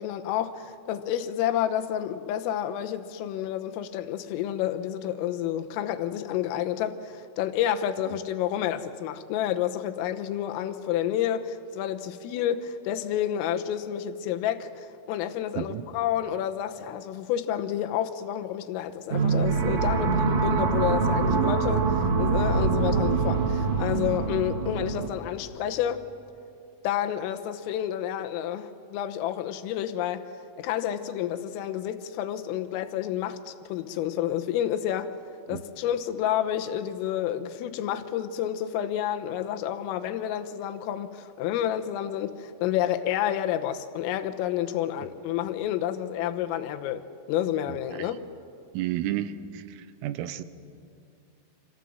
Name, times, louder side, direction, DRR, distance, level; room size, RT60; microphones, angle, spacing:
voice 1, 0.0-21.9 22.2-26.1 26.8-30.3 30.6-35.2 35.5-47.0 47.3-48.3, left 11 dB, 90° left, 3.7 m, -29 dB
voice 2, 15.6-15.9 21.3-21.6 35.5-35.6 47.7-48.1 48.7-50.4, right 12 dB, 85° right, 3.7 m, -32 dB
sound 1, 19.1-25.1, right 5 dB, 50° right, 3.0 m, -24 dB
28.5 x 27.0 x 7.8 m
omnidirectional pair, 5.8 m